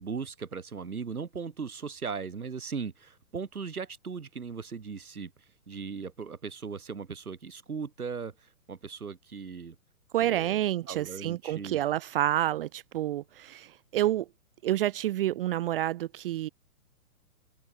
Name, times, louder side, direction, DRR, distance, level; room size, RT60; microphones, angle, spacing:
voice 1, 0.0-9.7 10.2-11.8, right 5 dB, 75° right, 6.8 m, -38 dB
voice 2, 10.1-14.3 14.6-16.5, right 13 dB, 40° right, 0.7 m, -29 dB
open air
figure-of-eight pair, 120°, 44 cm